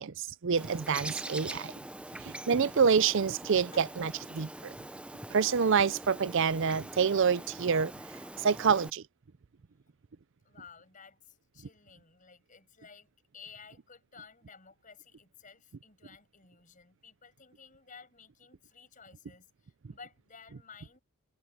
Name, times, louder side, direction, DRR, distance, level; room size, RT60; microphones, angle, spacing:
voice 1, 0.0-1.7 2.2-4.7 5.3-7.9 8.4-9.0, right 6 dB, 55° right, 0.5 m, -27 dB
Bird, 0.6-8.9, right 1 dB, 5° right, 0.6 m, -43 dB
voice 2, 10.4-13.1 13.3-21.0, left 5 dB, 35° left, 6.1 m, -54 dB
head